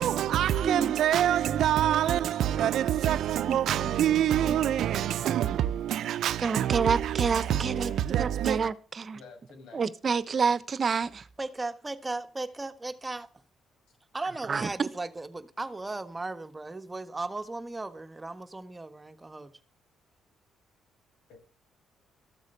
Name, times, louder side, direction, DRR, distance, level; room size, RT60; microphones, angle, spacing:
voice 1, 0.0-8.7, right 11 dB, 75° right, 0.7 m, -26 dB
voice 2, 0.6-0.9 3.5-3.9 4.5-4.6 6.4-7.9 8.2-9.2 9.7-11.2 14.5-14.7, right 5 dB, 40° right, 1.0 m, -29 dB
voice 3, 4.5-5.3 6.9-7.0 7.7-8.0 9.1-9.8 21.3-21.4, left 4 dB, 85° left, 5.7 m, -49 dB
voice 4, 11.4-13.3 14.1-19.5, right 2 dB, 20° right, 1.3 m, -36 dB
14.0 x 8.1 x 6.8 m
cardioid pair, 90°, 0 cm